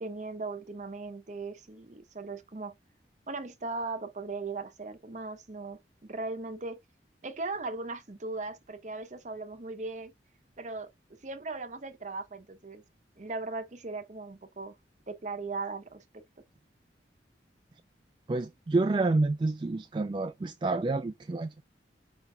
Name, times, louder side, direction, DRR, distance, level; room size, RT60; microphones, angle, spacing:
voice 1, 0.0-2.7 3.3-6.8 7.2-10.1 10.6-10.9 11.2-12.8 13.2-14.8 15.1-16.2, right 3 dB, 45° right, 0.8 m, -38 dB
voice 2, 18.3-21.6, right 3 dB, 25° right, 0.3 m, -28 dB
5.1 x 4.3 x 2.2 m
head